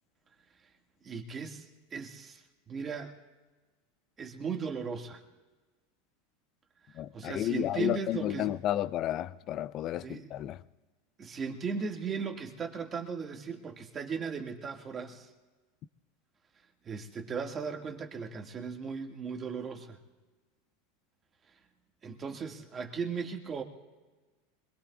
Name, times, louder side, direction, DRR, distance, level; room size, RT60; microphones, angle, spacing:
voice 1, 1.0-3.1 4.2-5.2 7.1-8.5 10.0-10.3 11.2-15.3 16.8-20.0 22.0-23.6, right 5 dB, 30° right, 2.0 m, -37 dB
voice 2, 7.0-10.6, left 13 dB, 45° left, 0.5 m, -32 dB
26.0 x 21.0 x 2.4 m
hypercardioid pair, 105°, 0 cm